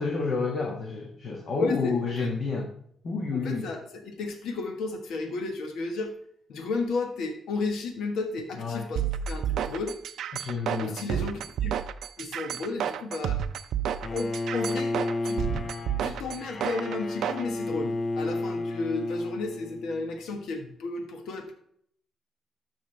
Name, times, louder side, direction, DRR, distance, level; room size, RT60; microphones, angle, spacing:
voice 1, 0.0-2.7 3.0-3.7 8.6-8.8 10.3-11.0, left 4 dB, 50° left, 0 dB, 1.3 m, -29 dB
voice 2, 1.6-2.3 3.3-6.1 6.5-9.0 9.3-10.0 10.8-11.7 12.2-13.4 14.1-15.4 16.0-21.5, left 3 dB, 85° left, 4 dB, 1.3 m, -33 dB
sound 1, 9.0-17.4, right 9 dB, 75° right, 0.4 m, -31 dB
Bowed string instrument, 14.0-20.1, left 2 dB, 35° left, 0.4 m, -32 dB
12.5 x 6.1 x 3.3 m, 0.67 s
cardioid pair, 135°, 0 cm